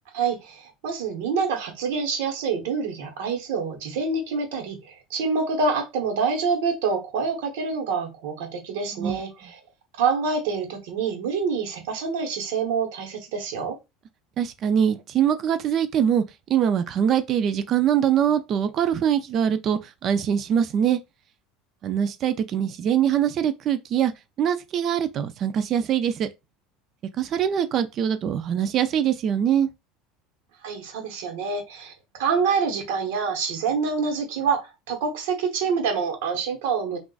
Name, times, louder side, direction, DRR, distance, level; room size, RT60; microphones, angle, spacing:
voice 1, 0.1-9.6 10.0-13.8 30.6-37.0, right 5 dB, 80° right, 1.0 m, -26 dB
voice 2, 14.4-16.2 16.5-21.0 21.8-24.1 24.4-26.3 27.2-29.7, right 9 dB, 45° right, 0.3 m, -23 dB
3.8 x 2.4 x 2.4 m
supercardioid pair, 125°, 0 cm